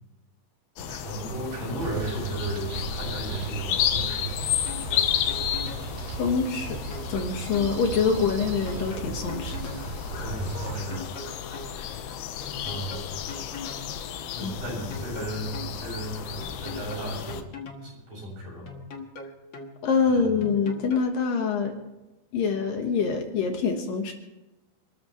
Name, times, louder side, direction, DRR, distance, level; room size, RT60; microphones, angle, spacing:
sound 1, 0.8-17.4, left 10 dB, 85° left, 3.0 m, -33 dB
voice 1, 0.8-4.4 7.8-8.1 10.2-11.1 11.5-11.6 12.6-13.2 14.3-17.4 17.8-18.8 20.1-20.5, right 1 dB, 55° right, -4 dB, 8.9 m, -35 dB
sound 2, 1.8-10.8, right 5 dB, 90° right, 3.9 m, -36 dB
sound 3, 4.4-5.9 6.7-7.7 8.4-9.9 10.7-11.7 12.4-13.9 14.7-15.7 16.4-17.9 18.7-19.7 20.4-21.0, left 3 dB, 50° left, 1.4 m, -40 dB
voice 2, 6.0-6.8 7.1-10.4 11.3-11.4 11.7-11.9 14.4-14.5 19.8-21.7 22.3-24.1, left 5 dB, 65° left, 3 dB, 2.9 m, -26 dB
29.0 x 13.5 x 3.2 m, 1.0 s
omnidirectional pair, 4.5 m